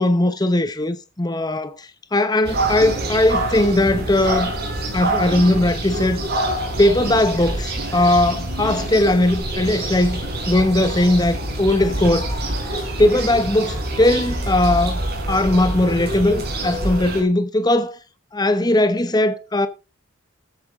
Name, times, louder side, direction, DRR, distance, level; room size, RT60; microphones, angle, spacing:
voice 1, 0.0-4.5 4.9-6.2 6.8-12.3 12.7-15.0 15.3-18.0 18.3-19.7, left 1 dB, 20° left, 1.0 m, -19 dB
sound 1, 2.4-17.2, right 1 dB, 50° right, 4.5 m, -26 dB
13.5 x 8.7 x 3.7 m
head